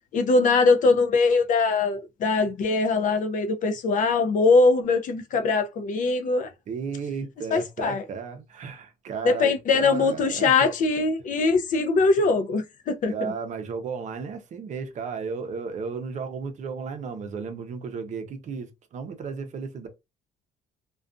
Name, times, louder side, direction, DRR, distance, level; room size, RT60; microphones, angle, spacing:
voice 1, 0.1-6.5 7.5-8.0 9.2-13.3, left 3 dB, 50° left, 0.5 m, -22 dB
voice 2, 6.7-10.7 13.1-19.9, right 5 dB, 45° right, 0.6 m, -34 dB
2.4 x 2.2 x 2.4 m
cardioid pair, 110°, 17 cm